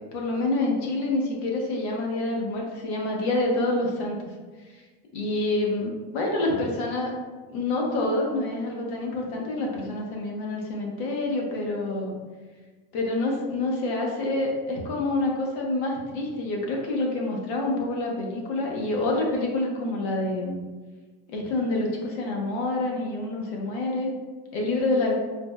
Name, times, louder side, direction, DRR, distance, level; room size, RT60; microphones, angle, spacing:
voice 1, 0.1-4.3 4.7-4.8 5.1-7.1 7.5-12.1 12.9-20.6 21.3-24.1 24.5-25.1, left 2 dB, 90° left, -1 dB, 0.8 m, -27 dB
4.3 x 2.1 x 2.2 m, 1.3 s
cardioid pair, 155°, 31 cm